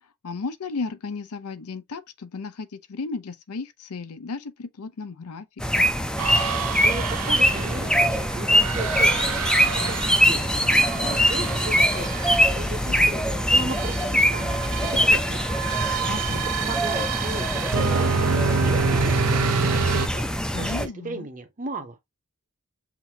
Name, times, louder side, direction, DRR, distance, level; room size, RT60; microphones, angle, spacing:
voice 1, 0.2-5.5 5.8-5.9 12.9-13.1 16.1-16.4 20.5-21.3, left 4 dB, 75° left, 0.6 m, -34 dB
sound 1, 5.6-20.9, equal, 5° left, 0.5 m, -23 dB
sound 2, 6.2-20.1, right 5 dB, 75° right, 0.6 m, -28 dB
voice 2, 6.8-9.4 9.7-16.2 16.6-22.0, right 2 dB, 35° right, 0.8 m, -36 dB
5.9 x 2.7 x 2.8 m
head